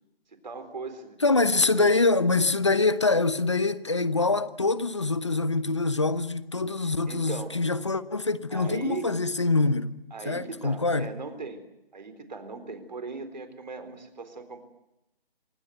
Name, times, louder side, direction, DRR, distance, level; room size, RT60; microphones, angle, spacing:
voice 1, 0.4-1.2 1.6-1.9 7.1-7.6 8.5-9.1 10.1-11.6 11.9-14.6, right 4 dB, 45° right, 4.1 m, -38 dB
voice 2, 1.2-10.0 10.3-11.1, left 3 dB, 30° left, 0.9 m, -24 dB
26.5 x 19.0 x 9.3 m
hypercardioid pair, 180°, 30 cm